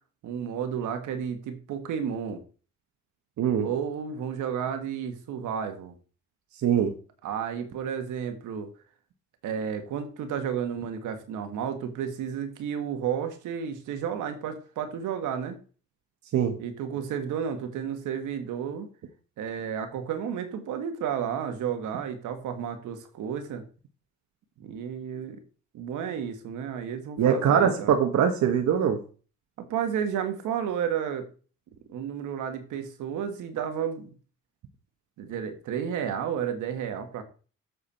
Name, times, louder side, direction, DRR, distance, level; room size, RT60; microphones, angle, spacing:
voice 1, 0.2-2.4 3.6-5.9 7.2-8.7 9.4-15.6 16.6-18.9 19.4-23.6 24.6-25.4 25.7-28.0 29.6-31.3 31.9-34.1 35.2-37.2, right 8 dB, 85° right, 7 dB, 1.7 m, -32 dB
voice 2, 3.4-3.7 6.6-6.9 16.3-16.6 27.2-29.0, right 8 dB, 70° right, 4 dB, 1.3 m, -22 dB
8.0 x 6.5 x 4.3 m, 0.37 s
cardioid pair, 90°, 30 cm